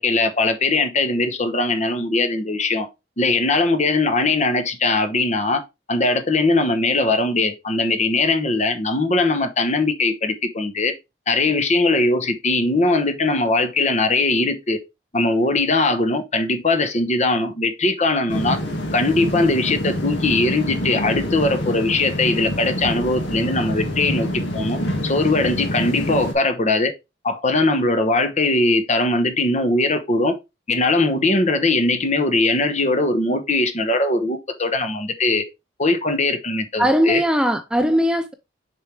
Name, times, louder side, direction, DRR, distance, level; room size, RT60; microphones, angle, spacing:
voice 1, 0.0-2.9 3.2-5.6 5.9-10.9 11.3-14.8 15.1-18.6 18.9-24.3 24.5-26.9 27.2-30.4 30.7-35.4 35.8-37.2, left 2 dB, 40° left, 1.0 m, -20 dB
sound 1, 18.3-26.3, equal, 70° left, 1.9 m, -26 dB
voice 2, 36.8-38.3, equal, 5° right, 0.4 m, -19 dB
6.6 x 4.6 x 3.4 m
head